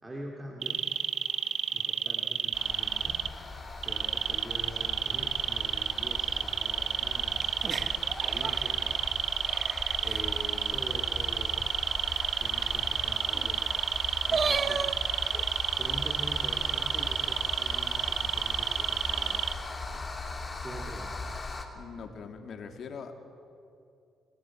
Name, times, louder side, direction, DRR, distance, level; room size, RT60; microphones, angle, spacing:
voice 1, 0.0-0.9 1.7-3.2 3.8-9.1 9.4-9.5 10.0-11.6 12.3-13.8 14.3-14.9 15.8-19.5 19.7-20.1 20.6-21.1, right 1 dB, 20° right, 0 dB, 2.7 m, -44 dB
sound 1, 0.6-3.3 3.8-19.5, right 9 dB, 70° right, 0.8 m, -30 dB
sound 2, 2.5-21.6, left 3 dB, 25° left, 2.8 m, -39 dB
sound 3, 7.3-10.5 10.9-11.0 11.3-11.4 11.6-15.6, right 4 dB, 35° right, 1.0 m, -36 dB
voice 2, 21.7-23.1, left 6 dB, 60° left, 5 dB, 2.6 m, -42 dB
27.5 x 15.0 x 8.6 m, 2.5 s
cardioid pair, 90°, 0 cm